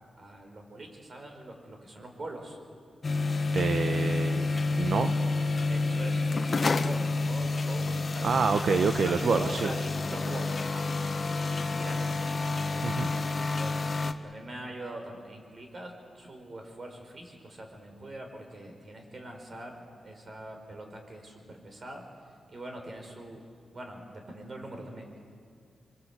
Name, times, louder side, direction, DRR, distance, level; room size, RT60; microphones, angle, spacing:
voice 1, 0.2-2.6 3.8-3.9 5.7-10.9 11.4-13.8 14.2-22.0 22.5-23.4 23.7-25.2, right 1 dB, 45° right, 3 dB, 5.0 m, -43 dB
sound 1, 3.0-14.1, left 3 dB, 45° left, 1.2 m, -29 dB
voice 2, 3.5-4.5 4.8-5.3 8.2-9.7 12.8-13.1, right 5 dB, 70° right, 7 dB, 1.0 m, -27 dB
26.0 x 21.5 x 8.2 m, 2.3 s
cardioid pair, 75°, 0 cm